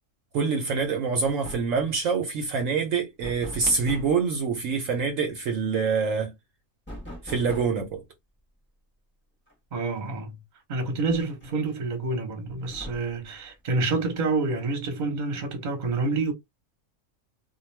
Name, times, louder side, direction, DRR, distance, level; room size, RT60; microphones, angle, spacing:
voice 1, 0.3-6.3 7.2-8.0, right 5 dB, 70° right, 0.9 m, -26 dB
sound 1, 0.8-1.0 1.2-1.9 3.2-4.2 6.9-7.9 9.5-9.6 10.0-10.1 11.1-11.7 12.6-13.3, equal, 10° left, 0.7 m, -41 dB
voice 2, 9.7-10.4 10.7-16.3, right 3 dB, 40° right, 0.8 m, -28 dB
2.3 x 2.3 x 3.1 m
omnidirectional pair, 1.5 m